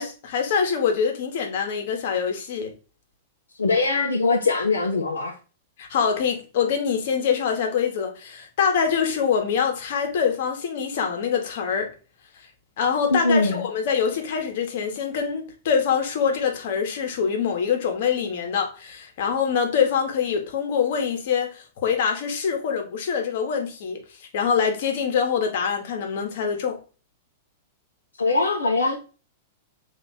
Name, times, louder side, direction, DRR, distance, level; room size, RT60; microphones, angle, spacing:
voice 1, 0.0-2.7 5.8-11.9 12.8-24.0 24.3-26.8, left 6 dB, 60° left, 1.3 m, -24 dB
voice 2, 3.6-5.3 13.1-13.7 28.2-29.0, left 3 dB, 85° left, 0.8 m, -22 dB
3.4 x 2.8 x 4.3 m
hypercardioid pair, 100°, 0 cm